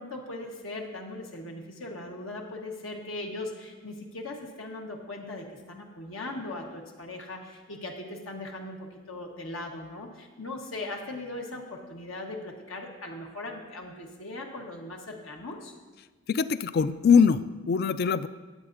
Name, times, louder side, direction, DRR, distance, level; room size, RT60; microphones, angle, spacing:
voice 1, 0.0-15.7, left 2 dB, 85° left, 0 dB, 1.2 m, -39 dB
voice 2, 16.3-18.3, left 6 dB, 50° left, 15 dB, 0.3 m, -22 dB
19.5 x 7.8 x 2.6 m, 1.3 s
head